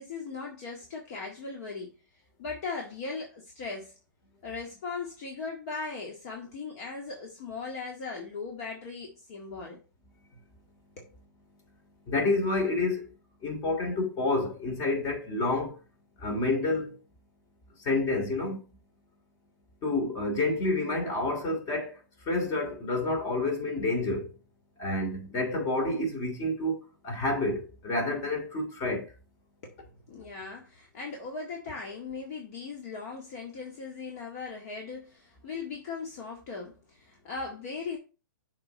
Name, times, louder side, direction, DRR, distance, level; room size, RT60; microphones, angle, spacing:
voice 1, 0.0-1.9 2.4-3.9 4.4-9.8 11.0-11.1 29.6-29.8 30.1-38.0, left 4 dB, 50° left, 1.9 m, -38 dB
voice 2, 12.1-13.1 13.4-15.8 16.2-17.0 17.8-18.6 19.8-22.0 22.3-24.3 24.8-29.1, left 2 dB, 30° left, 3.0 m, -29 dB
6.9 x 4.5 x 4.2 m
hypercardioid pair, 130°, 11 cm